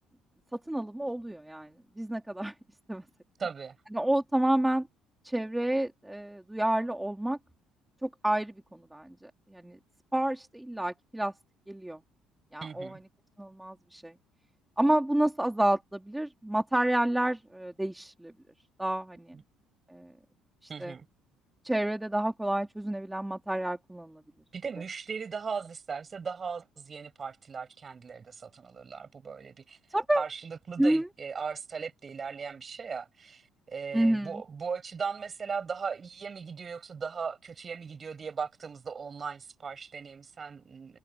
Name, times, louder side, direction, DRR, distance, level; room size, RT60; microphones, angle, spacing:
voice 1, 0.5-1.7 2.0-2.5 2.9-3.0 3.9-4.9 5.2-7.4 8.0-9.8 10.1-11.3 11.7-12.0 12.5-13.0 13.4-14.1 14.8-18.3 18.8-19.3 19.9-20.1 20.8-20.9 21.6-24.2 29.9-30.2 30.8-31.1 33.9-34.4, right 1 dB, 5° right, 2.3 m, -29 dB
voice 2, 3.4-3.8 12.6-13.0 20.7-21.1 24.5-29.8 30.1-41.0, right 5 dB, 25° right, 7.6 m, -38 dB
cardioid pair, 175°, 0 cm